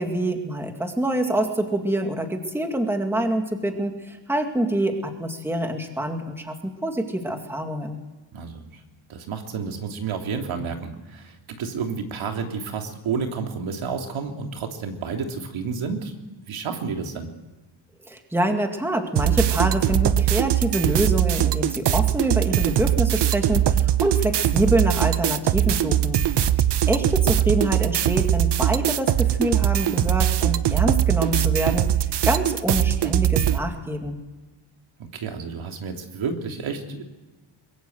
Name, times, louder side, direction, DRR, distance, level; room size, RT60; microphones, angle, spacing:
voice 1, 0.0-8.0 18.1-26.2 26.9-31.9 32.2-34.2, right 1 dB, 5° right, 4 dB, 2.1 m, -25 dB
voice 2, 8.3-8.8 9.1-16.1 16.5-17.3 35.1-37.0, right 5 dB, 75° right, 3 dB, 3.1 m, -30 dB
sound 1, 19.2-33.6, right 11 dB, 60° right, 0.9 m, -21 dB
23.0 x 22.5 x 8.0 m, 1.1 s
wide cardioid pair, 165°, 48 cm